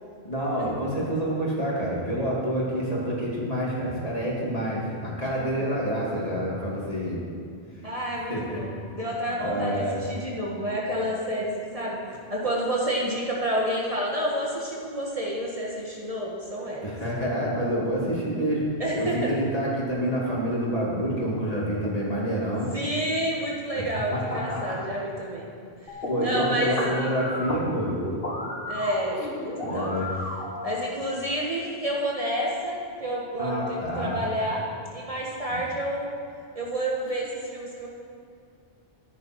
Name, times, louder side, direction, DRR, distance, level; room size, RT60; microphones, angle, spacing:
voice 1, 0.2-7.2 7.8-7.9 8.3-8.6 9.4-9.9 16.8-18.6 18.9-22.7 24.1-24.8 26.1-28.0 29.2-29.3 29.6-30.1 33.4-34.2 35.5-35.6, equal, 35° left, -6 dB, 3.1 m, -28 dB
voice 2, 7.8-16.9 18.8-19.4 22.7-25.5 25.8-27.1 28.7-29.9 30.6-34.7 34.9-36.1 36.6-37.9, equal, 35° right, -4 dB, 1.6 m, -29 dB
sound 1, 25.9-30.9, left 1 dB, 60° left, 2.2 m, -33 dB
14.0 x 11.0 x 4.7 m, 2.4 s
omnidirectional pair, 1.1 m